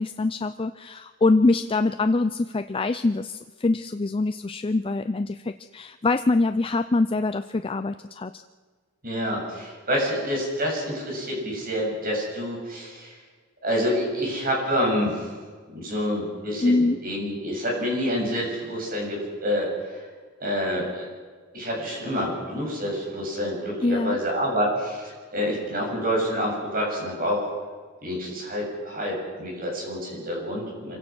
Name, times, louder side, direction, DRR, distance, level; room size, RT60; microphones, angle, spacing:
voice 1, 0.0-8.4 16.6-17.0 23.8-24.2, left 3 dB, 25° left, 10 dB, 0.5 m, -24 dB
voice 2, 9.0-13.1 13.6-15.3 15.7-20.0 20.4-21.1 21.5-27.5 28.0-31.0, equal, 50° right, -1 dB, 7.9 m, -27 dB
26.5 x 17.0 x 6.3 m, 1.5 s
head